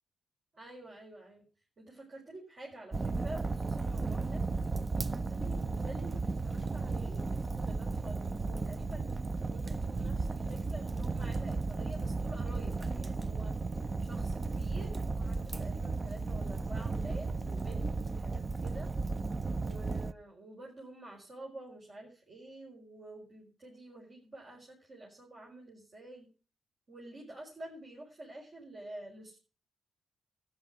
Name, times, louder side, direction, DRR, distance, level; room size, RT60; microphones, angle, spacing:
voice 1, 0.5-1.4 1.8-4.4 4.9-9.1 9.5-13.5 14.0-18.9 19.6-26.3 26.9-29.4, right 2 dB, 55° right, -3 dB, 4.7 m, -49 dB
Fire, 2.9-20.1, right 3 dB, 35° right, 0.6 m, -34 dB
12.5 x 10.5 x 6.1 m, 0.37 s
supercardioid pair, 55°, 0 cm